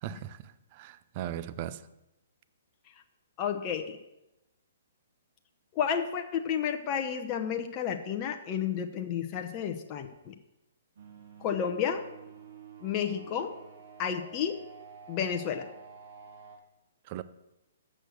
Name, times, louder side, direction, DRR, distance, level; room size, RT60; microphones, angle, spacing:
voice 1, 0.0-1.8 17.1-17.2, right 11 dB, 40° right, 0.5 m, -38 dB
voice 2, 3.4-4.0 5.8-10.3 11.4-12.0 12.8-13.5 14.0-14.6 15.1-15.7, left 8 dB, 30° left, 0.8 m, -31 dB
sound 1, 11.0-16.6, right 6 dB, 65° right, 2.1 m, -50 dB
7.7 x 6.4 x 6.5 m
figure-of-eight pair, 125°, 0 cm